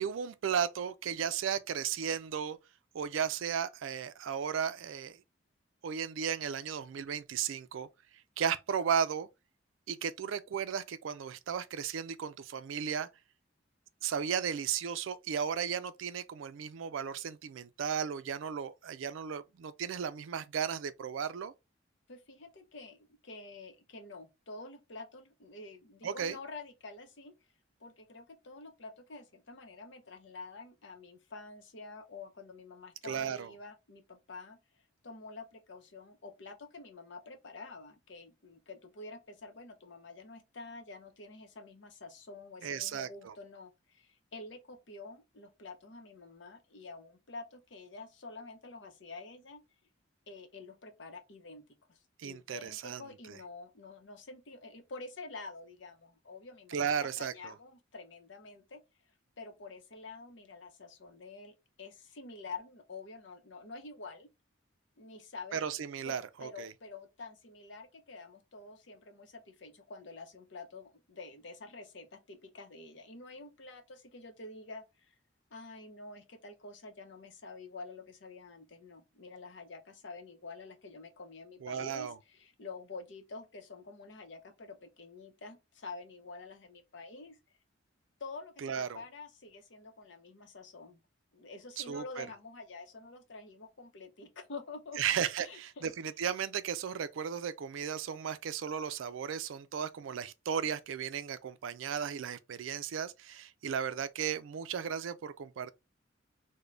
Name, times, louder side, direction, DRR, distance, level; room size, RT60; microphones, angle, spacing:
voice 1, 0.0-2.6 2.9-5.2 5.8-7.9 8.4-9.3 9.9-13.1 14.0-21.5 26.0-26.4 33.0-33.5 42.6-43.3 52.2-53.4 56.7-57.6 65.5-66.7 81.6-82.2 88.6-89.0 91.8-92.3 95.0-105.7, right 7 dB, 75° right, 0.4 m, -35 dB
voice 2, 22.1-27.3 27.8-49.6 50.3-51.6 51.9-58.8 59.4-64.3 65.0-65.6 66.0-75.1 75.5-87.4 88.2-91.0 91.3-95.0 95.4-95.9, left 3 dB, 60° left, 0.7 m, -48 dB
3.2 x 2.1 x 3.7 m
head